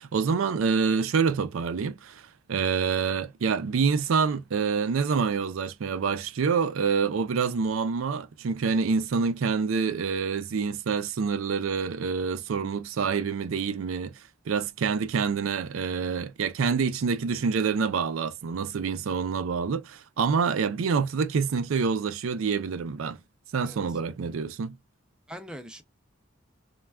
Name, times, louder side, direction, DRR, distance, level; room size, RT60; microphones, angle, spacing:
voice 1, 0.0-23.2 23.5-24.8, right 5 dB, 85° right, 0.4 m, -27 dB
voice 2, 23.6-24.0 25.3-25.8, equal, 5° right, 0.3 m, -42 dB
3.2 x 2.2 x 2.2 m
head